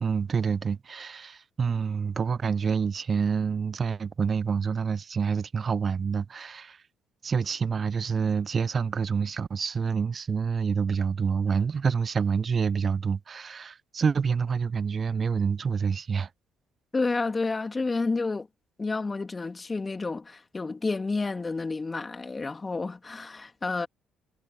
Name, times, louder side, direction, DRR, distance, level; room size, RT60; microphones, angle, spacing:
voice 1, 0.0-6.8 7.2-16.3, right 6 dB, 40° right, 0.6 m, -27 dB
voice 2, 16.9-18.5 18.8-23.9, left 3 dB, 25° left, 3.0 m, -30 dB
hypercardioid pair, 50°, 0 cm